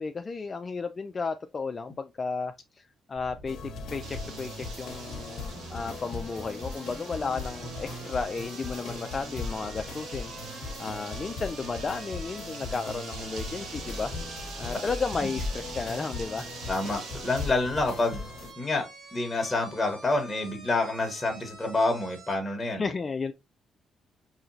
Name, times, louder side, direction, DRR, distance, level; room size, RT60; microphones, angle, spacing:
voice 1, 0.0-16.5 22.7-23.3, left 4 dB, 35° left, 0.3 m, -34 dB
sound 1, 3.1-22.4, right 2 dB, 65° right, 1.6 m, -48 dB
sound 2, 3.5-18.5, left 3 dB, 65° left, 0.8 m, -39 dB
sound 3, 4.0-17.5, right 4 dB, 80° right, 1.1 m, -44 dB
voice 2, 16.7-18.2 18.6-18.8 19.1-22.8, left 2 dB, 20° left, 1.1 m, -28 dB
4.8 x 2.9 x 2.6 m
cardioid pair, 90°, 0 cm